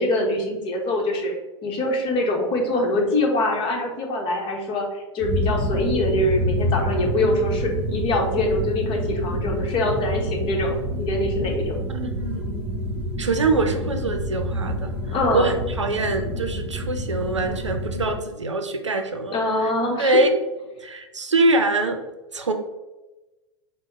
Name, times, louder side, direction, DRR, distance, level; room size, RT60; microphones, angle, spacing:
voice 1, 0.0-1.4 1.6-11.8 15.0-15.5 19.3-20.3, left 1 dB, 35° left, 1 dB, 1.1 m, -24 dB
sound 1, 5.2-18.2, equal, 15° right, 1.2 m, -27 dB
voice 2, 11.9-12.4 13.2-19.7 20.0-20.3 20.8-22.0 22.3-22.5, right 2 dB, 85° right, 6 dB, 0.6 m, -24 dB
5.3 x 2.2 x 4.2 m, 1.1 s
figure-of-eight pair, 90°, 15 cm